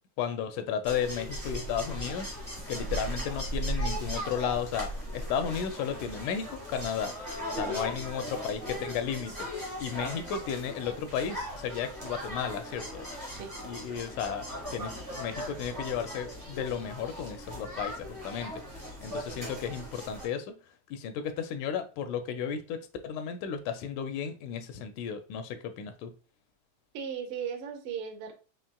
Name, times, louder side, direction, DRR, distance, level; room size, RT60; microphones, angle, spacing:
voice 1, 0.2-2.3 2.7-7.1 7.5-9.5 9.8-13.1 13.6-14.5 14.7-18.6 19.0-20.5 20.9-26.1, left 7 dB, 85° left, 2.0 m, -34 dB
sound 1, 0.8-20.3, equal, 15° right, 0.8 m, -38 dB
voice 2, 26.9-28.3, right 7 dB, 80° right, 1.2 m, -37 dB
5.7 x 3.0 x 2.2 m
omnidirectional pair, 3.5 m